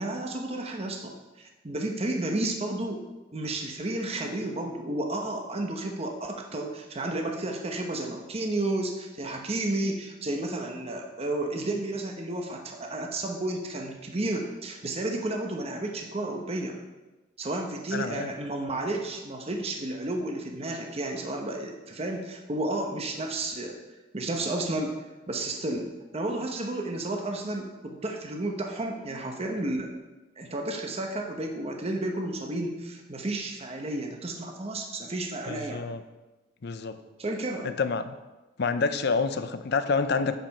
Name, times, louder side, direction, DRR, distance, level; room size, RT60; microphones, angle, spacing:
voice 1, 0.0-3.0 3.3-16.8 17.4-23.8 24.1-24.9 25.3-29.9 30.4-35.8 37.2-37.8, right 2 dB, 30° right, 2 dB, 0.9 m, -32 dB
voice 2, 17.9-18.3 35.5-36.0 36.6-37.0 37.6-38.1 38.6-40.4, left 4 dB, 60° left, 11 dB, 0.6 m, -28 dB
9.1 x 5.0 x 5.7 m, 1.1 s
head